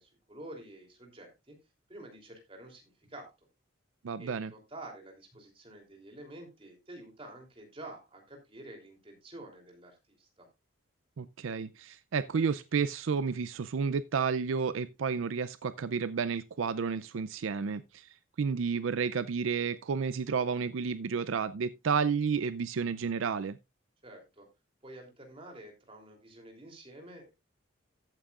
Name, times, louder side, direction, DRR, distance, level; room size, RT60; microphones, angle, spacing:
voice 1, 0.0-1.6 1.9-3.3 4.2-10.5 24.0-24.5 24.8-27.3, right 1 dB, 25° right, 3.2 m, -49 dB
voice 2, 4.0-4.5 11.2-23.6, right 5 dB, 70° right, 0.4 m, -31 dB
14.0 x 8.9 x 2.4 m
head